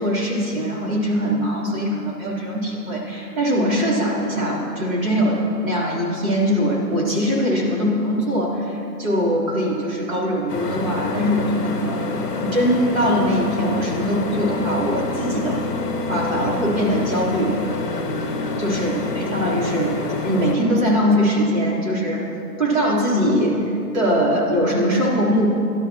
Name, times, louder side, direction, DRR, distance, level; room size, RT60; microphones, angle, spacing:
voice 1, 0.0-12.1 12.4-15.6 16.1-17.6 18.6-22.3 22.6-23.6 23.9-25.5, equal, 50° right, -5 dB, 3.7 m, -21 dB
sound 1, 10.5-20.5, left 3 dB, 30° left, 1.3 m, -27 dB
24.0 x 12.5 x 3.0 m, 2.8 s
hypercardioid pair, 180°, 49 cm